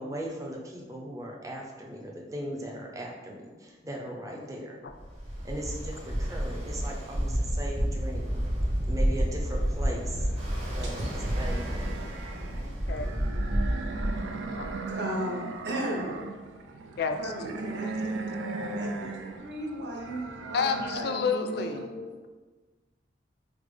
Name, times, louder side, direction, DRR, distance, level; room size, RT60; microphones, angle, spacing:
voice 1, 0.0-4.8 5.4-8.5 8.9-10.3 10.8-11.0 11.4-12.0, right 1 dB, 20° right, -2 dB, 0.5 m, -38 dB
voice 2, 4.4-4.7 12.6-13.1 14.6-14.8 17.0-17.4 17.8-18.0 20.5-21.9, left 5 dB, 55° left, 7 dB, 0.3 m, -31 dB
Ocean, 5.0-14.9, equal, 35° right, 0.9 m, -30 dB
sound 1, 9.8-21.0, right 3 dB, 90° right, 0.4 m, -38 dB
voice 3, 14.9-16.2 17.2-18.2 18.6-19.1 19.4-22.1, right 1 dB, 65° right, -2 dB, 0.8 m, -35 dB
5.0 x 2.0 x 3.2 m, 1.3 s
head